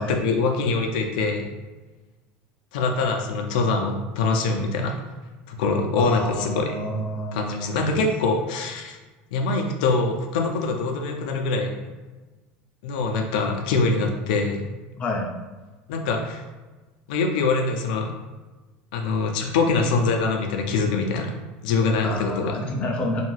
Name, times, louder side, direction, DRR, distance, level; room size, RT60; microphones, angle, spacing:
voice 1, 0.0-1.5 2.7-4.9 5.5-6.7 7.3-9.0 9.3-11.7 12.8-14.6 15.9-16.4 17.1-18.1 18.9-21.3 21.6-22.5, left 3 dB, 85° left, 3 dB, 0.4 m, -24 dB
voice 2, 6.0-8.0 15.0-15.3 19.4-19.5 22.0-23.2, left 1 dB, 25° left, 0 dB, 0.4 m, -29 dB
2.6 x 2.3 x 3.0 m, 1.2 s
cardioid pair, 145°, 4 cm